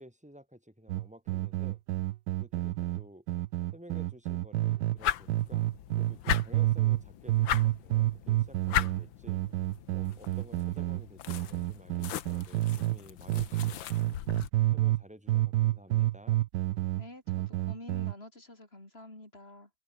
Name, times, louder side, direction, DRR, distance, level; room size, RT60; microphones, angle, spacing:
voice 1, 0.0-1.8 2.4-3.3 3.7-9.4 9.9-14.2 14.7-16.4, equal, 5° right, 5.4 m, -53 dB
sound 1, 0.9-5.0 5.3-7.0 7.3-13.0 13.3-15.0 15.3-18.1, right 16 dB, 70° right, 1.1 m, -29 dB
sound 2, 5.0-14.5, left 11 dB, 80° left, 1.8 m, -37 dB
voice 2, 17.0-19.7, left 2 dB, 30° left, 6.0 m, -48 dB
omnidirectional pair, 2.1 m